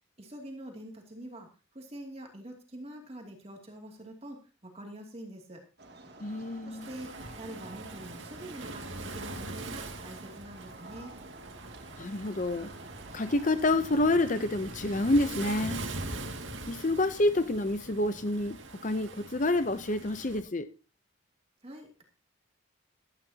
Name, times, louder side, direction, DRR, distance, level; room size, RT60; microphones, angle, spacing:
voice 1, 0.2-5.6 6.6-11.2 21.6-22.0, right 1 dB, 30° right, 2.6 m, -45 dB
sound 1, 5.8-14.4, right 2 dB, 55° right, 2.5 m, -50 dB
voice 2, 6.2-6.9 12.0-12.7 13.1-15.8 16.7-18.6 18.8-20.7, left 2 dB, 40° left, 0.7 m, -28 dB
Waves surf, 6.8-20.4, right 2 dB, 70° right, 2.1 m, -42 dB
16.0 x 13.0 x 2.9 m
head